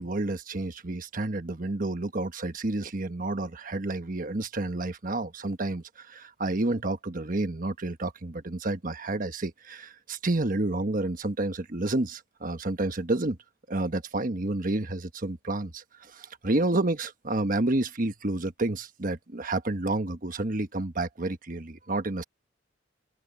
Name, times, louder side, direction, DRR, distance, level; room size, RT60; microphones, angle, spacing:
voice 1, 0.0-13.4 13.7-22.2, right 2 dB, 45° right, 1.2 m, -30 dB
head